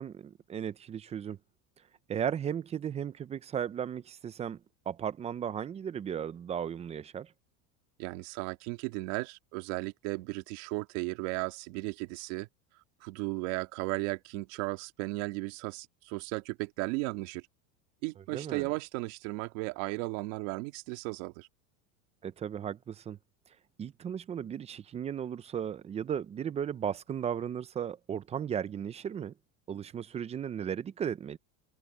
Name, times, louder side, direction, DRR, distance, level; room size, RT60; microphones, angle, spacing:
voice 1, 0.0-1.4 2.1-4.6 4.9-7.3 18.3-18.7 22.2-23.2 23.8-29.3 29.7-31.4, right 8 dB, 15° right, 0.4 m, -35 dB
voice 2, 8.0-12.5 13.0-17.4 18.0-21.5, right 24 dB, 65° right, 2.2 m, -35 dB
supercardioid pair, 145°, 40 cm